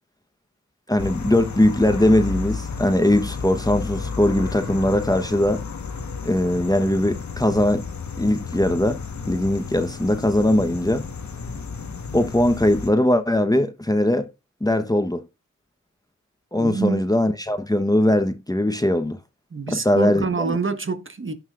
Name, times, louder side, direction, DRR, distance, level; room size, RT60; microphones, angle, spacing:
voice 1, 0.9-5.6 6.2-7.9 8.2-9.0 9.3-11.0 12.1-14.3 14.6-15.2 16.5-19.2 19.7-20.6, left 1 dB, 10° left, 1.0 m, -20 dB
sound 1, 1.0-12.9, left 5 dB, 65° left, 1.3 m, -32 dB
voice 2, 16.6-17.0 19.5-21.3, right 4 dB, 40° right, 1.4 m, -26 dB
15.5 x 5.6 x 2.5 m
cardioid pair, 60°, 30 cm